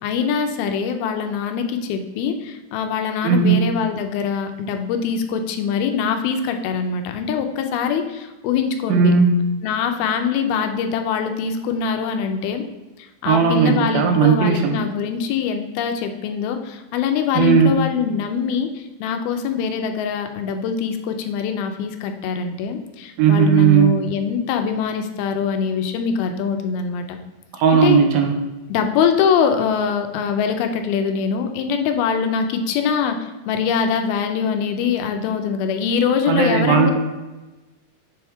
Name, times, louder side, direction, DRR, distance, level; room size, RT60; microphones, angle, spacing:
voice 1, 0.0-9.1 9.6-12.6 13.0-27.2 27.7-28.0 28.7-36.9, left 6 dB, 90° left, 6 dB, 2.5 m, -23 dB
voice 2, 3.2-3.6 8.9-9.4 13.3-14.8 17.3-17.7 23.2-23.9 27.5-28.3 36.3-36.9, right 6 dB, 85° right, 3 dB, 2.6 m, -16 dB
6.9 x 3.5 x 4.5 m, 1.1 s
omnidirectional pair, 4.3 m